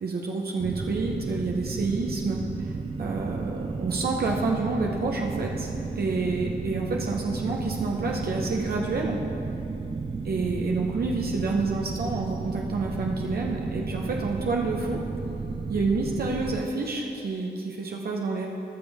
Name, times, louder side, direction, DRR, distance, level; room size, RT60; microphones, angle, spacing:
voice 1, 0.0-2.7 3.0-9.2 10.2-15.0 15.7-18.5, right 3 dB, 60° right, -1 dB, 1.0 m, -28 dB
sound 1, 0.6-16.6, right 4 dB, 30° right, 0.7 m, -33 dB
17.5 x 6.2 x 3.6 m, 2.8 s
cardioid pair, 70°, 18 cm